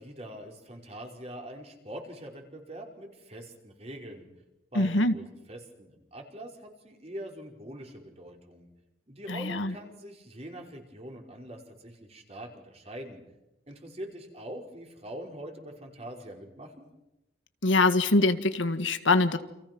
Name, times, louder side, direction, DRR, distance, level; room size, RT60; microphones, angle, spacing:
voice 1, 0.0-4.3 4.7-8.7 9.1-13.2 13.7-16.9, right 1 dB, 35° right, 2 dB, 5.2 m, -43 dB
voice 2, 4.8-5.1 9.3-9.7 17.6-19.4, left 2 dB, 85° left, 10 dB, 1.8 m, -24 dB
29.5 x 28.0 x 6.2 m, 0.91 s
head